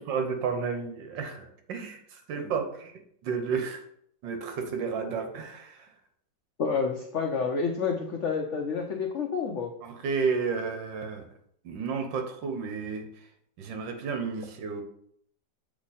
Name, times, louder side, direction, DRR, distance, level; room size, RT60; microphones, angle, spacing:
voice 1, 0.0-3.9 4.2-5.9 9.8-11.3 11.6-13.1 13.6-14.8, right 5 dB, 75° right, 6 dB, 1.5 m, -32 dB
voice 2, 6.6-9.7, left 5 dB, 80° left, 3 dB, 0.6 m, -29 dB
7.8 x 3.1 x 4.1 m, 0.67 s
omnidirectional pair, 2.0 m